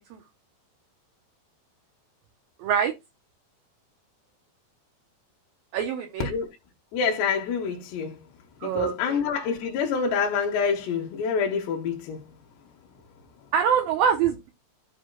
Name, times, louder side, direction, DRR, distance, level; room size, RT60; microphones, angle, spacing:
voice 1, 2.6-2.9 5.7-6.3 8.6-9.2 13.5-14.5, right 8 dB, 75° right, 2.4 m, -24 dB
voice 2, 6.9-8.1 8.6-12.2, left 6 dB, 90° left, 3.2 m, -26 dB
13.5 x 5.1 x 2.3 m
omnidirectional pair, 4.8 m